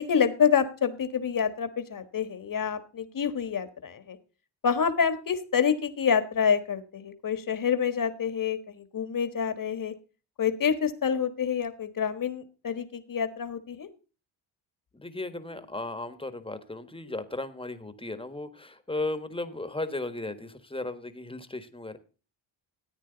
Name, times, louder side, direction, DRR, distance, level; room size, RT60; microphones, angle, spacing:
voice 1, 0.0-4.2 4.6-9.9 10.4-13.9, left 7 dB, 45° left, 11 dB, 1.6 m, -27 dB
voice 2, 14.9-22.0, left 2 dB, 10° left, 10 dB, 1.4 m, -35 dB
14.0 x 9.0 x 4.0 m, 0.34 s
cardioid pair, 85°, 47 cm